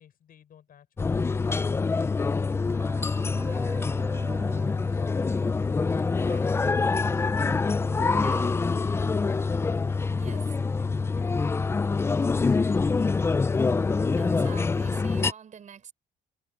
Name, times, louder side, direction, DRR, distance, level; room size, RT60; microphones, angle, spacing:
voice 1, 0.0-2.7 3.4-8.5 9.8-13.2, left 9 dB, 55° left, 5.7 m, -57 dB
sound 1, 1.0-15.3, left 4 dB, 15° left, 0.3 m, -25 dB
voice 2, 1.4-1.8 6.2-6.7 8.2-8.6 10.1-10.6 14.2-15.9, right 7 dB, 45° right, 5.6 m, -46 dB
sound 2, 2.4-8.5, right 3 dB, 15° right, 3.5 m, -43 dB
cardioid pair, 135°, 18 cm